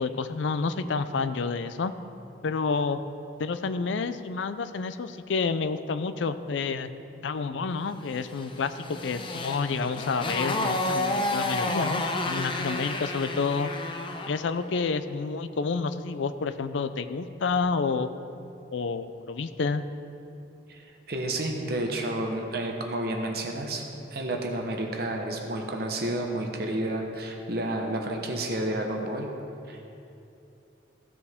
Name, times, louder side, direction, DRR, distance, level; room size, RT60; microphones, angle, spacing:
voice 1, 0.0-1.9 2.4-3.0 3.4-6.9 7.2-13.7 14.3-18.1 18.7-19.9, left 4 dB, 75° left, 11 dB, 0.4 m, -29 dB
Motorcycle, 8.3-14.4, left 2 dB, 25° left, 0.6 m, -30 dB
voice 2, 21.1-23.8 24.1-29.3 29.7-29.9, right 1 dB, 55° right, 2 dB, 1.0 m, -30 dB
15.0 x 6.9 x 3.6 m, 2.8 s
head